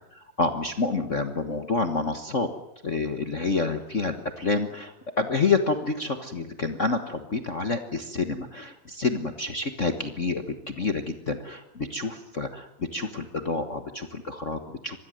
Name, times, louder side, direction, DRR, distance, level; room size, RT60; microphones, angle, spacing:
voice 1, 0.1-2.5 2.8-15.0, left 3 dB, 60° left, 7 dB, 0.7 m, -28 dB
26.0 x 20.5 x 7.8 m, 0.88 s
omnidirectional pair, 3.6 m